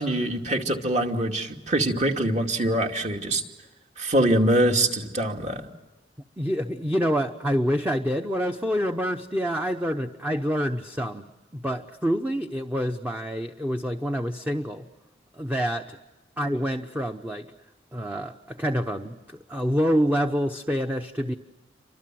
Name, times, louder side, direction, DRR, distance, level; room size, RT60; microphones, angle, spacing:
voice 1, 0.0-3.4 4.0-5.7, right 1 dB, 40° right, 3 dB, 2.6 m, -24 dB
voice 2, 6.4-14.9 15.3-16.0 16.4-17.5 17.9-21.3, equal, 10° right, 5 dB, 0.9 m, -27 dB
29.5 x 25.5 x 7.7 m, 1.1 s
head